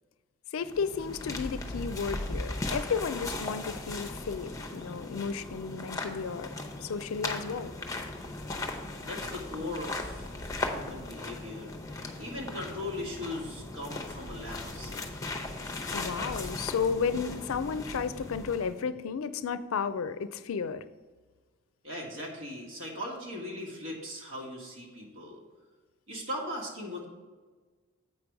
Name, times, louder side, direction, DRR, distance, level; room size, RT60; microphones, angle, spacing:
voice 1, 0.5-6.5 6.8-7.8 15.9-20.8, left 6 dB, 80° left, 13 dB, 0.4 m, -33 dB
sound 1, 0.6-18.8, left 2 dB, 15° left, 0.7 m, -38 dB
voice 2, 9.0-10.3 10.6-15.4 21.8-25.4 26.1-27.1, left 1 dB, 70° right, -1 dB, 1.9 m, -39 dB
8.3 x 5.2 x 4.7 m, 1.4 s
head